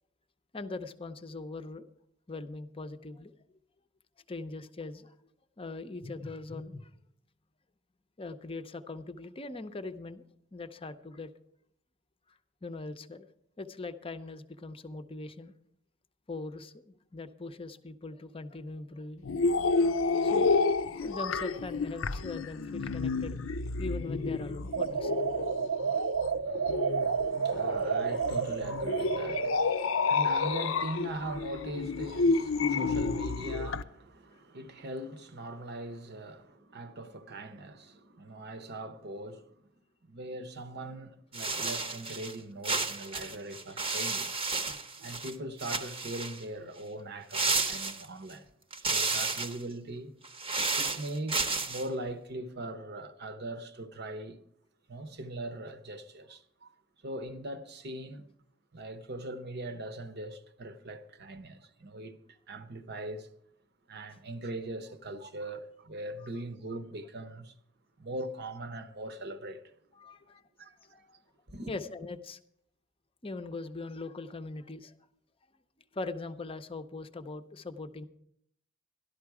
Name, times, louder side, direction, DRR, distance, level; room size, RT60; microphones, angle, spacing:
voice 1, 0.5-1.8 2.3-3.3 4.3-5.1 5.6-6.9 8.2-10.2 10.5-11.3 12.3-13.3 13.6-15.5 16.3-19.2 20.2-20.5 21.0-23.4 23.8-25.2 34.3-34.4 66.2-66.3 69.9-71.2 71.7-72.4 73.2-74.9 75.9-78.0, left 3 dB, 25° left, 0.6 m, -41 dB
sound 1, 19.2-33.8, left 4 dB, 70° left, 0.5 m, -30 dB
sound 2, 24.7-29.6, right 6 dB, 70° right, 0.6 m, -31 dB
voice 2, 26.5-39.6 40.0-44.7 45.0-48.5 48.9-50.1 50.8-54.4 54.9-56.7 57.0-58.3 58.7-62.2 62.5-63.3 63.9-67.5 68.0-69.6 70.6-70.7 71.5-71.7, right 1 dB, 55° right, 0.9 m, -41 dB
sound 3, 41.3-42.3 42.6-45.3 45.6-46.4 47.3-48.3 48.7-49.6 50.2-51.9, right 3 dB, 25° right, 0.9 m, -32 dB
12.5 x 12.0 x 4.8 m
head